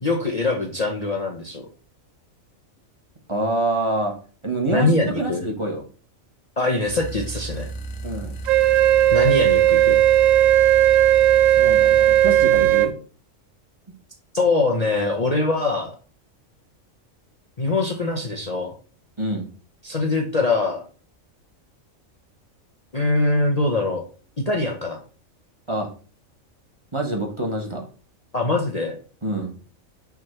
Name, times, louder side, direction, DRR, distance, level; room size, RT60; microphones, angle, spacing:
voice 1, 0.0-1.7 4.7-5.4 6.6-7.7 9.1-10.0 14.3-15.9 17.6-18.7 19.8-20.8 22.9-24.0 24.5-25.0 28.3-29.0, left 2 dB, 35° left, 1 dB, 0.9 m, -23 dB
voice 2, 3.3-4.1 4.4-5.8 8.0-8.3 11.6-12.9 19.2-19.5 25.7-25.9 26.9-27.8 29.2-29.5, right 2 dB, 20° right, 1 dB, 1.5 m, -26 dB
sound 1, 6.8-12.9, right 2 dB, 65° left, 1.2 m, -34 dB
Wind instrument woodwind instrument, 8.5-12.9, right 13 dB, 80° right, 1.0 m, -16 dB
5.9 x 3.8 x 6.0 m, 0.38 s
omnidirectional pair, 1.4 m